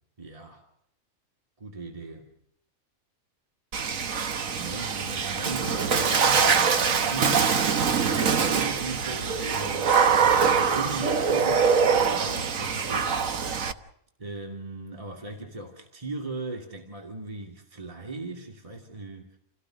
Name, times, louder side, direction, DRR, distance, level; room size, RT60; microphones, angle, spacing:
voice 1, 0.2-0.6 1.6-2.3 4.6-13.5 14.2-19.4, right 2 dB, 25° right, 2.7 m, -38 dB
Water / Splash splatter, 3.7-13.7, right 6 dB, 65° right, 1.6 m, -24 dB
29.5 x 17.5 x 6.4 m
omnidirectional pair, 1.5 m